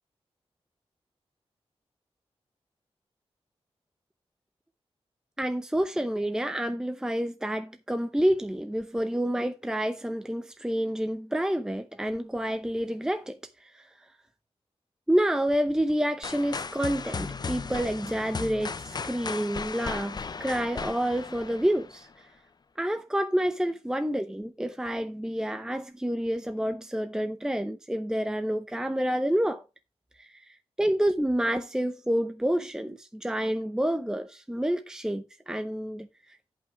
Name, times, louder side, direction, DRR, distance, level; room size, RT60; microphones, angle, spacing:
voice 1, 5.4-13.9 15.1-22.1 22.8-29.6 30.2-30.4 30.8-36.1, equal, 5° right, 0.7 m, -28 dB
sound 1, 16.2-22.1, left 5 dB, 40° left, 0.6 m, -36 dB
9.3 x 5.6 x 4.6 m
wide cardioid pair, 115°, 11 cm